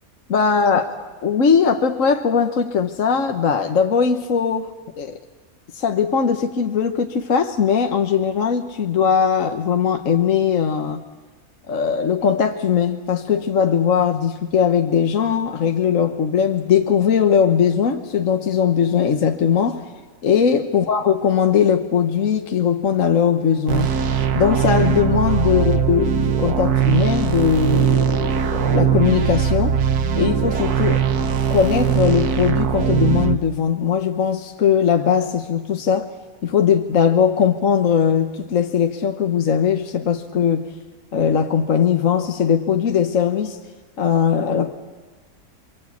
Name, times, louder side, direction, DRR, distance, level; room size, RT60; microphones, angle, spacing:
voice 1, 0.3-1.0 1.2-5.2 5.7-11.0 11.7-19.9 20.2-23.9 24.3-29.8 30.2-31.0 31.5-36.1 36.4-40.7 41.1-43.6 44.0-44.7, left 7 dB, 60° left, 5 dB, 1.4 m, -19 dB
sound 1, 23.7-33.4, right 8 dB, 90° right, 1.7 m, -20 dB
28.0 x 24.5 x 8.4 m, 1.3 s
omnidirectional pair, 1.6 m